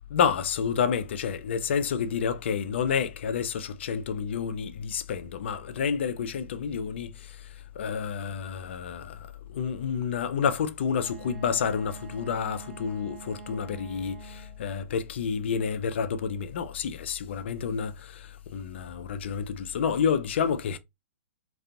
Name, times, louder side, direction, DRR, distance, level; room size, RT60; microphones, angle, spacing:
voice 1, 0.1-20.8, left 7 dB, 55° left, 0.3 m, -29 dB
Wind instrument woodwind instrument, 10.9-14.7, right 5 dB, 55° right, 0.5 m, -46 dB
2.4 x 2.3 x 2.4 m
figure-of-eight pair, 115°, 7 cm